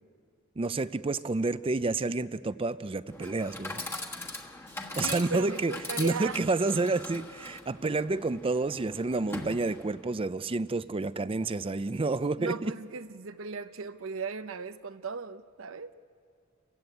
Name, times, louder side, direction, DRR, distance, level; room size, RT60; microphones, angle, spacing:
voice 1, 0.6-3.8 5.0-5.7 6.0-12.7, right 3 dB, 25° right, 15 dB, 0.5 m, -29 dB
Chatter / Coin (dropping), 3.1-10.1, left 2 dB, 10° left, 1.4 m, -41 dB
voice 2, 5.0-6.4 12.4-15.9, right 4 dB, 75° right, 11 dB, 0.8 m, -37 dB
29.5 x 15.5 x 8.4 m, 2.2 s
head